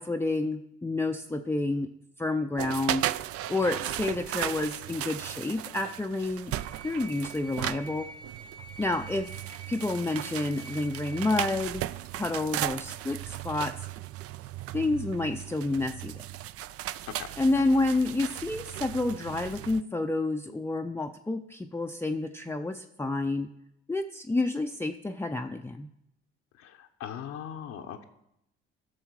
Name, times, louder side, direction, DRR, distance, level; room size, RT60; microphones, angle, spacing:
voice 1, 0.0-1.9 2.2-3.0 3.5-6.5 6.8-8.1 8.8-9.3 9.7-11.9 12.1-13.7 14.7-16.2 17.4-23.5 23.9-25.9, left 2 dB, 10° left, 4 dB, 0.5 m, -29 dB
sound 1, 2.6-19.8, right 13 dB, 50° right, 0.4 m, -36 dB
sound 2, 6.5-11.6, right 4 dB, 15° right, 1.1 m, -47 dB
voice 2, 26.5-28.0, left 9 dB, 65° left, 3 dB, 0.8 m, -40 dB
13.0 x 6.3 x 4.7 m, 0.80 s
hypercardioid pair, 60°, 30 cm